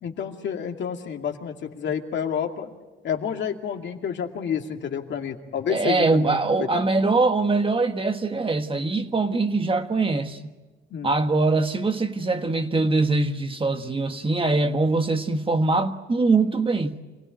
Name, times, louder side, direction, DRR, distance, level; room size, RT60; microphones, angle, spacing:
voice 1, 0.0-2.7 3.0-6.8 10.9-11.1, left 7 dB, 65° left, 2.4 m, -29 dB
voice 2, 5.7-10.5 11.0-17.0, right 3 dB, 25° right, 1.5 m, -23 dB
26.0 x 17.5 x 9.2 m
cardioid pair, 90°, 20 cm